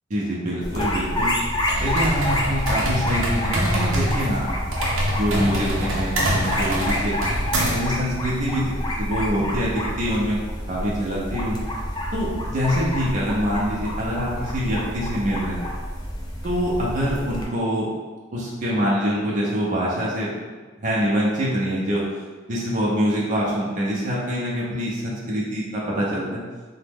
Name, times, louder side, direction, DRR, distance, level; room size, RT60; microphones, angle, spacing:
voice 1, 0.1-1.3 1.8-4.5 5.2-7.2 7.7-10.4 10.7-11.6 12.1-15.6 16.4-17.9 18.3-20.3 20.8-22.0 22.5-26.4, equal, 40° right, -5 dB, 0.6 m, -25 dB
sound 1, 0.6-17.4, equal, 20° left, 0.4 m, -28 dB
sound 2, 1.6-7.9, equal, 80° right, 0.6 m, -25 dB
2.9 x 2.1 x 3.4 m, 1.4 s
head